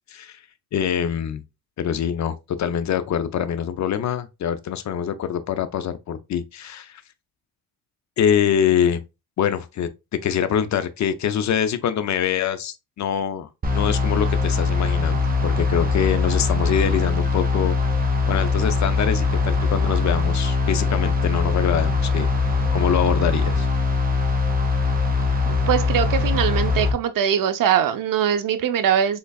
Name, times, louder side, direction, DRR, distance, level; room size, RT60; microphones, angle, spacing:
voice 1, 0.1-0.4 0.7-1.4 1.8-7.0 8.2-9.0 9.4-17.8 18.3-22.3 22.7-23.7, left 9 dB, 50° left, 0.5 m, -24 dB
sound 1, 13.6-26.9, left 4 dB, 25° right, 0.9 m, -21 dB
voice 2, 25.5-29.2, right 9 dB, 60° right, 0.6 m, -22 dB
3.7 x 3.2 x 2.2 m
cardioid pair, 100°, 38 cm